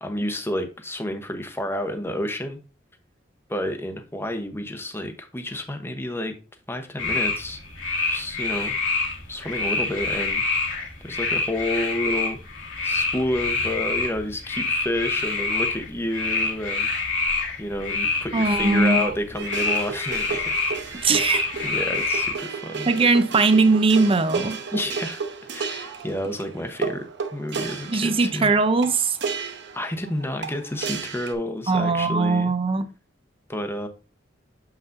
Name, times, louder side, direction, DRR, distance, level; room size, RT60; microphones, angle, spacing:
voice 1, 0.0-2.6 3.5-6.3 6.7-7.6 8.1-8.8 9.3-10.4 11.0-12.4 12.8-16.9 17.6-21.1 21.6-22.9 24.7-25.2 25.5-27.1 27.3-28.5 29.7-32.5 33.5-33.9, left 1 dB, 15° left, 0.9 m, -30 dB
sound 1, 7.0-22.3, left 3 dB, 75° left, 1.7 m, -26 dB
voice 2, 18.3-19.1 21.0-21.4 22.9-24.6 27.9-29.2 31.7-32.9, right 3 dB, 30° right, 0.6 m, -20 dB
sound 2, 19.3-31.3, right 5 dB, 65° right, 0.9 m, -33 dB
7.1 x 5.8 x 2.6 m
head